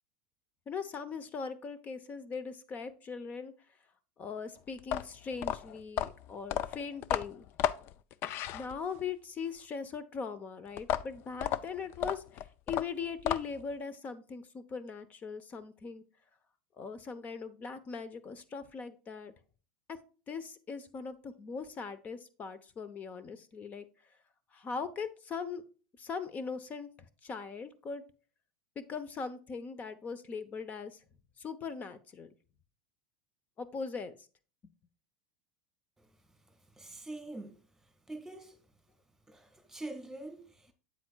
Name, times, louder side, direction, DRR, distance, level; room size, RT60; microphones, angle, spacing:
voice 1, 0.7-3.5 4.2-7.5 8.5-12.4 12.7-16.0 16.8-19.3 19.9-20.0 20.3-23.8 24.5-25.6 26.0-26.9 27.2-28.0 28.9-31.0 31.4-32.3 33.6-34.1, left 5 dB, 30° left, 0.8 m, -40 dB
sound 1, 4.8-9.1 10.8-13.7, left 10 dB, 50° left, 0.4 m, -34 dB
voice 2, 36.8-37.6 38.1-38.6 39.3-40.7, right 2 dB, 5° right, 1.8 m, -44 dB
8.5 x 7.7 x 2.4 m
hypercardioid pair, 110°, 5 cm